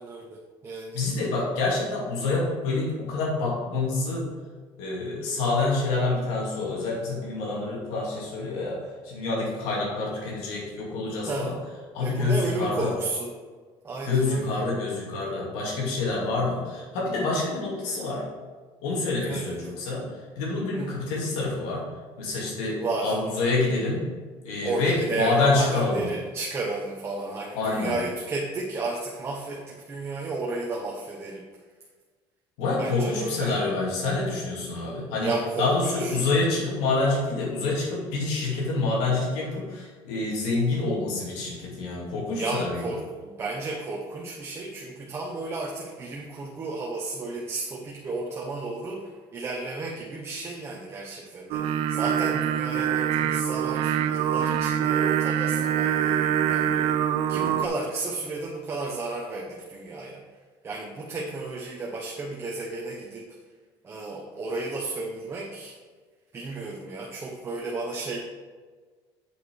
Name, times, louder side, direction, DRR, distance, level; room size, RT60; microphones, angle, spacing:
voice 1, 0.0-1.0 11.3-11.5 12.0-13.3 13.8-14.6 19.3-19.6 20.7-21.1 22.8-23.2 24.6-31.5 32.8-33.6 35.2-36.2 42.4-60.2 60.6-63.3 63.8-65.8 66.3-68.2, right 3 dB, 25° right, -2 dB, 0.9 m, -33 dB
voice 2, 0.9-4.3 4.8-11.6 11.9-12.9 14.0-18.3 18.8-21.8 22.2-24.1 24.4-26.1 27.5-28.0 32.6-42.9, left 3 dB, 90° left, -3 dB, 2.4 m, -27 dB
Singing, 51.5-57.7, right 9 dB, 70° right, 0.6 m, -24 dB
8.3 x 5.6 x 4.6 m, 1.5 s
cardioid pair, 145°, 10 cm